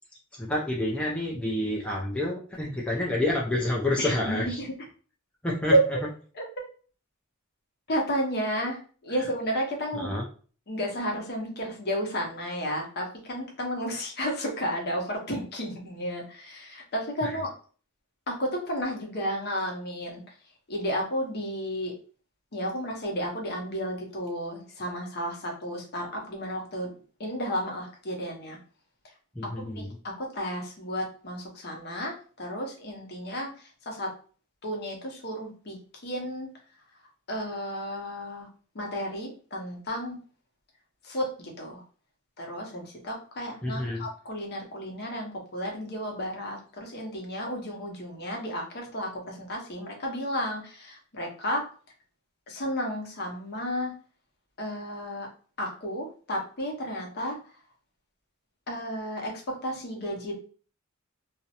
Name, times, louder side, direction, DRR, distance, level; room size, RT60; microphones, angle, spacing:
voice 1, 0.4-4.6 5.4-5.7 9.2-9.3 9.9-10.3 17.2-17.4 29.3-30.0 43.6-44.1, left 1 dB, 5° left, -4 dB, 0.4 m, -29 dB
voice 2, 4.0-4.7 5.7-5.8 7.9-10.1 10.7-17.5 18.3-20.2 20.7-21.9 22.5-26.9 27.2-28.6 29.5-34.1 34.6-35.8 36.0-36.5 37.3-38.5 38.7-40.2 41.0-41.8 42.4-51.6 52.5-53.9 54.6-55.3 55.6-57.4 58.7-60.3, equal, 50° left, 1 dB, 0.7 m, -32 dB
2.4 x 2.0 x 2.7 m, 0.40 s
head